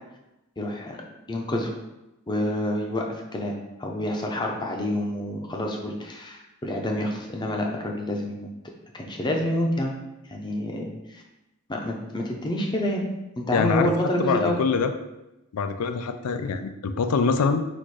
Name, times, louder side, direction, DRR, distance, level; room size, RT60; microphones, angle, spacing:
voice 1, 0.6-1.0 1.3-1.7 2.3-8.5 8.9-10.0 10.3-11.2 11.7-13.0 13.4-14.6, left 1 dB, 20° left, 0 dB, 0.6 m, -28 dB
voice 2, 13.5-13.9 14.2-14.9 15.5-17.6, left 5 dB, 85° left, 9 dB, 0.4 m, -24 dB
4.2 x 2.5 x 4.7 m, 0.96 s
head